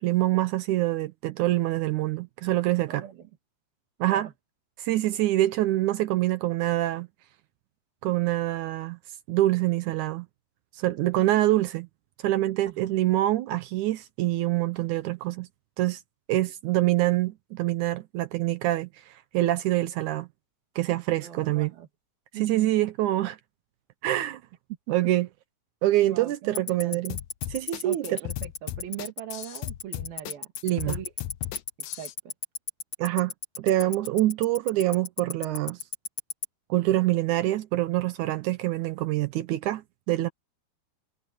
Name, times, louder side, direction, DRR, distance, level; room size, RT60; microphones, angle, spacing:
voice 1, 0.0-3.0 4.0-4.3 4.8-7.1 8.0-9.0 9.3-10.3 10.8-11.9 12.2-15.5 15.8-16.0 16.3-20.3 20.8-21.7 22.4-23.4 24.0-24.4 24.9-25.3 25.8-27.2 27.5-28.0 30.6-31.0 33.0-35.8 36.7-40.3, right 15 dB, 90° right, 1.7 m, -25 dB
voice 2, 2.9-3.2 4.0-4.3 12.6-13.0 21.2-21.9 22.3-22.7 26.0-27.2 27.8-31.1 32.0-32.1, right 9 dB, 70° right, 3.8 m, -40 dB
Tick-tock, 26.6-36.4, left 7 dB, 45° left, 2.0 m, -31 dB
sound 1, 27.1-32.1, left 14 dB, 80° left, 1.8 m, -36 dB
omnidirectional pair, 4.6 m